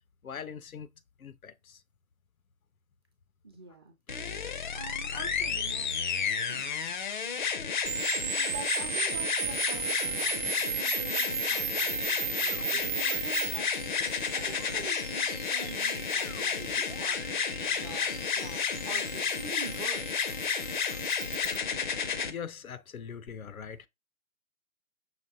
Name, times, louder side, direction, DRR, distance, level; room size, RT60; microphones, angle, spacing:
voice 1, 0.2-0.9 1.2-1.8 20.9-21.0 22.2-23.9, left 7 dB, 85° left, 0.6 m, -42 dB
voice 2, 3.4-3.9 4.7-5.9 6.5-6.7 8.2-20.2, right 4 dB, 20° right, 0.4 m, -46 dB
sound 1, 4.1-22.3 23.3-23.4, left 6 dB, 35° left, 0.4 m, -31 dB
sound 2, 7.9-21.6, right 8 dB, 55° right, 0.7 m, -36 dB
5.8 x 2.9 x 2.7 m
figure-of-eight pair, 130°, 41 cm